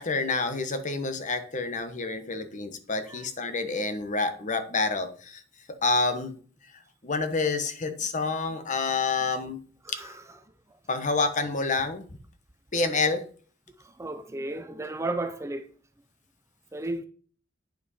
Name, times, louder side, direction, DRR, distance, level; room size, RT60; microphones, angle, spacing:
voice 1, 0.0-5.4 5.8-6.4 7.0-9.6 9.9-10.2 10.9-12.0 12.7-13.3, left 3 dB, 40° left, 1.1 m, -28 dB
voice 2, 14.0-15.7 16.7-17.0, right 2 dB, 15° right, 0.5 m, -33 dB
9.1 x 5.5 x 5.5 m
head